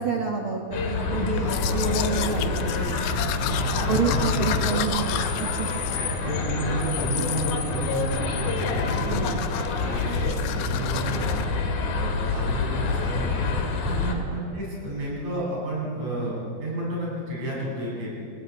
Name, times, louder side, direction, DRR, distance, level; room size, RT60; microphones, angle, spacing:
voice 1, 0.0-3.0 3.9-5.7 9.0-9.5 13.9-14.2, right 5 dB, 75° right, 2 dB, 1.2 m, -29 dB
sound 1, 0.7-14.1, left 4 dB, 60° left, 4.0 m, -27 dB
Domestic sounds home sounds, 1.4-6.6 7.0-7.6 7.9-8.3 8.6-11.5, left 12 dB, 75° left, 2.4 m, -34 dB
voice 2, 3.7-4.7 6.0-9.2 9.8-11.3 11.9-13.6 14.3-18.1, right 1 dB, 40° right, -4 dB, 9.2 m, -31 dB
26.5 x 20.5 x 8.4 m, 2.6 s
omnidirectional pair, 5.0 m